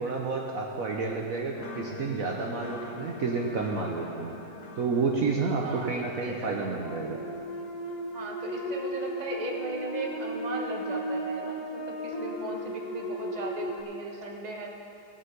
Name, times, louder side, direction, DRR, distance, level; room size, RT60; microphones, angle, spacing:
voice 1, 0.0-4.3 4.8-7.2, right 4 dB, 60° right, 0 dB, 1.2 m, -30 dB
sound 1, 1.2-13.8, equal, 65° left, 1.6 m, -37 dB
voice 2, 5.6-6.5 8.1-14.7, right 2 dB, 25° right, 0 dB, 1.2 m, -37 dB
18.0 x 8.0 x 5.3 m, 2.8 s
omnidirectional pair, 1.9 m